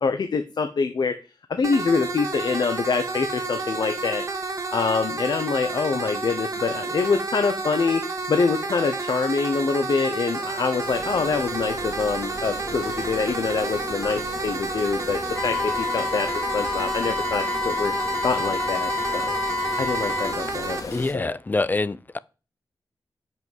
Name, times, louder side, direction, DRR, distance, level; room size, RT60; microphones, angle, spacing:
voice 1, 0.0-1.2 1.5-4.2 4.7-8.0 8.3-17.9 18.2-19.3 19.8-21.3, left 4 dB, 65° left, 1.0 m, -25 dB
sound 1, 1.6-20.8, right 3 dB, 45° right, 2.1 m, -30 dB
sound 2, 10.8-21.1, left 3 dB, 50° left, 2.5 m, -38 dB
Wind instrument woodwind instrument, 15.3-20.4, left 4 dB, 5° left, 3.2 m, -28 dB
voice 2, 20.9-22.2, left 3 dB, 25° left, 0.5 m, -25 dB
11.0 x 5.9 x 7.5 m
wide cardioid pair, 165°, 8 cm